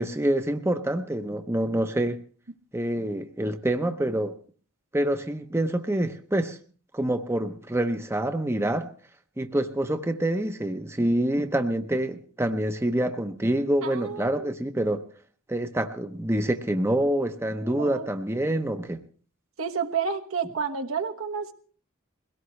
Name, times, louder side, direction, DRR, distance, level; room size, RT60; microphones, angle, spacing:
voice 1, 0.0-2.2 2.7-4.4 4.9-6.6 6.9-8.9 9.4-15.0 15.5-19.0, right 1 dB, 10° right, 7 dB, 0.7 m, -26 dB
voice 2, 13.8-14.5 17.6-18.1 19.6-21.5, right 6 dB, 75° right, 4 dB, 1.4 m, -30 dB
22.0 x 17.5 x 3.2 m, 0.42 s
head